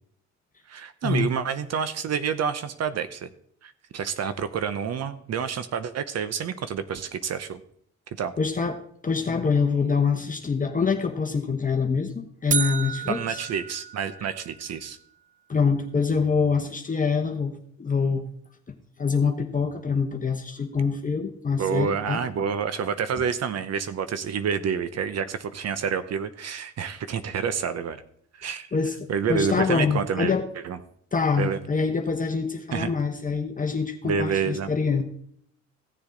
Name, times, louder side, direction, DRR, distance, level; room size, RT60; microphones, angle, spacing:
voice 1, 0.7-3.3 3.6-7.6 8.2-8.3 13.1-15.0 21.6-28.0 28.3-28.7 29.1-30.3 30.6-30.8 31.4-31.6 32.7-32.9 34.0-34.7, right 7 dB, 60° right, 12 dB, 0.8 m, -28 dB
voice 2, 8.4-13.4 15.5-18.2 19.0-22.2 28.7-28.9 29.3-30.5 31.1-35.0, left 5 dB, 25° left, 4 dB, 1.0 m, -25 dB
sound 1, 12.5-14.6, right 7 dB, 25° right, 0.4 m, -31 dB
15.5 x 7.1 x 3.9 m, 0.66 s
cardioid pair, 90°, 30 cm